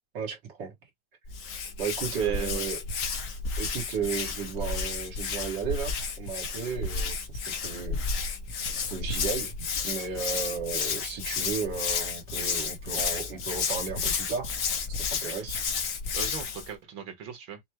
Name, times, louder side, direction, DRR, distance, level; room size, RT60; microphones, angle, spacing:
voice 1, 0.1-0.7 1.8-2.8 3.6-8.0 8.8-9.6 9.8-14.5 15.0-15.6, right 6 dB, 70° right, 2.2 m, -34 dB
Hands, 1.3-16.7, left 5 dB, 50° left, 1.1 m, -32 dB
voice 2, 2.1-2.6 15.3-15.4 16.1-17.6, right 7 dB, 85° right, 2.2 m, -38 dB
6.3 x 2.2 x 2.9 m
omnidirectional pair, 2.0 m